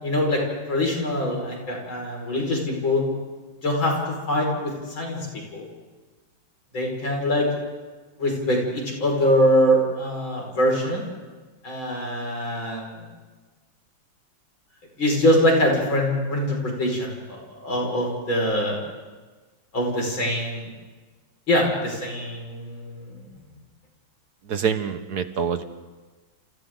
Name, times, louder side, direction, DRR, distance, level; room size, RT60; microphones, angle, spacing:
voice 1, 0.0-0.4 0.7-3.0 3.6-3.9 4.3-5.3 5.5-5.7 6.7-7.5 8.2-11.0 11.6-13.0 15.0-18.8 19.7-20.7 21.5-23.2, equal, 80° left, -1 dB, 6.3 m, -23 dB
voice 2, 24.5-25.6, right 7 dB, 60° right, 9 dB, 1.5 m, -25 dB
29.0 x 28.5 x 3.9 m, 1.3 s
omnidirectional pair, 2.1 m